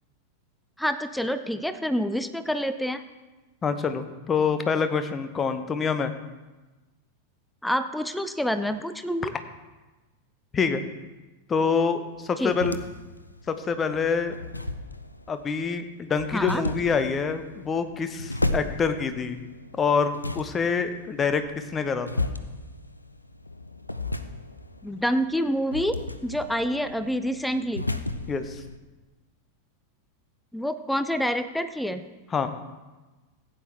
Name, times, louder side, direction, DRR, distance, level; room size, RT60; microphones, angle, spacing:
voice 1, 0.8-3.0 7.6-9.3 12.4-12.6 16.3-16.6 24.8-26.0 26.2-27.8 30.5-32.0, equal, ahead, 10 dB, 0.5 m, -27 dB
voice 2, 3.6-6.1 10.5-10.8 11.5-12.8 13.5-14.4 15.3-19.4 19.8-21.4 21.7-22.2 28.3-28.6 32.3-32.5, left 5 dB, 20° left, 9 dB, 0.9 m, -26 dB
sound 1, 12.1-28.8, left 2 dB, 85° left, 0.5 m, -35 dB
15.0 x 9.1 x 3.4 m, 1.2 s
figure-of-eight pair, 90°, 0 cm